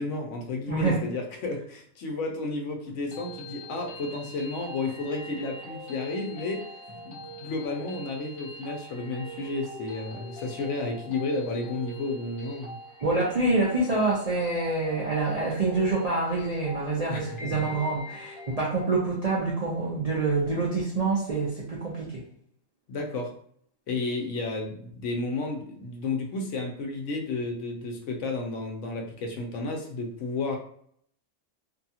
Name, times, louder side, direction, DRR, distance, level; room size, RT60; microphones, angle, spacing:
voice 1, 0.0-6.6 7.1-12.7 17.1-17.5 22.9-23.3 23.9-30.6, left 3 dB, 70° left, 2 dB, 0.9 m, -32 dB
voice 2, 0.7-1.0 13.0-22.2, right 3 dB, 50° right, -6 dB, 0.4 m, -26 dB
sound 1, 2.9-18.8, right 1 dB, 30° left, 0.6 m, -43 dB
2.7 x 2.3 x 2.7 m, 0.63 s
omnidirectional pair, 1.4 m